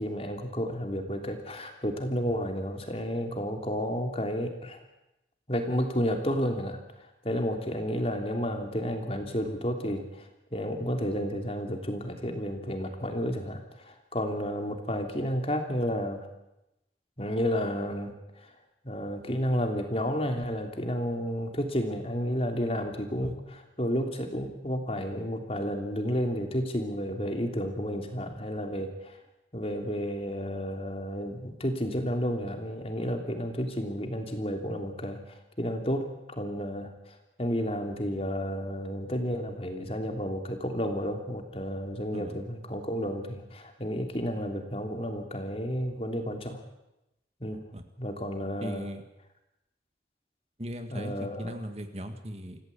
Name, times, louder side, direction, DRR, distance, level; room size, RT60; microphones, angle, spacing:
voice 1, 0.0-4.8 5.5-16.3 17.2-18.1 18.4-18.5 18.8-29.2 29.5-46.6 47.4-47.6 48.0-48.9 50.9-51.5, equal, 35° left, 4 dB, 3.1 m, -31 dB
voice 2, 48.6-49.0 50.6-52.6, equal, 35° right, 7 dB, 1.8 m, -38 dB
26.5 x 16.5 x 8.5 m, 0.92 s
head